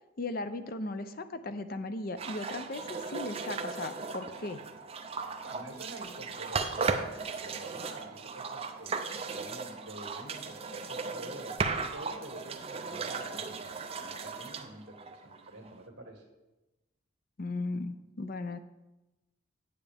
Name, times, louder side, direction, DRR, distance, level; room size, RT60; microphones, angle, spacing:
voice 1, 0.2-4.6 17.4-18.6, left 2 dB, 45° left, 10 dB, 0.5 m, -37 dB
sound 1, 2.2-15.7, right 4 dB, 30° right, 0.5 m, -36 dB
voice 2, 5.0-16.2, right 1 dB, 55° right, 0 dB, 1.9 m, -48 dB
9.2 x 8.5 x 3.5 m, 1.0 s
head